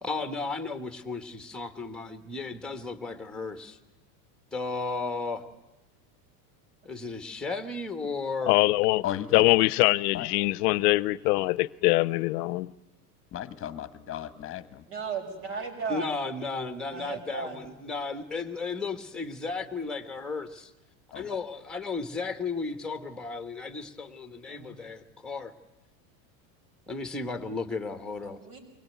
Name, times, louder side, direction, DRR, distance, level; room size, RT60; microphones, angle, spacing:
voice 1, 0.0-3.8 4.5-5.4 6.8-8.6 15.9-20.7 21.1-25.5 26.9-28.4, left 4 dB, ahead, 1.3 m, -34 dB
voice 2, 8.5-9.0 9.3-12.7, left 20 dB, 65° left, 0.7 m, -23 dB
voice 3, 9.0-9.6 10.1-10.3 13.3-14.8 21.1-21.4, left 11 dB, 25° left, 1.3 m, -35 dB
voice 4, 14.9-16.2 16.9-17.6 24.5-24.8 28.2-28.6, right 5 dB, 65° right, 6.2 m, -36 dB
23.5 x 18.0 x 9.4 m
supercardioid pair, 140°, 49 cm